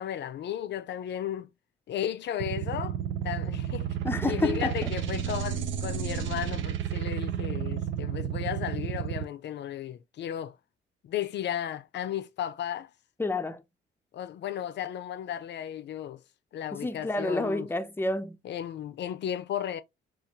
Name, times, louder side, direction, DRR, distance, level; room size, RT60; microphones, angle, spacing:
voice 1, 0.0-1.5 1.9-3.0 3.2-4.0 4.3-10.6 11.0-12.9 14.1-16.2 16.5-17.7 18.4-19.8, left 10 dB, 60° left, 0.5 m, -34 dB
sound 1, 2.4-9.2, right 9 dB, 75° right, 0.6 m, -32 dB
voice 2, 4.0-4.9 13.2-13.6 16.7-18.4, left 2 dB, 10° left, 0.5 m, -29 dB
3.8 x 2.5 x 2.7 m
cardioid pair, 90°, 20 cm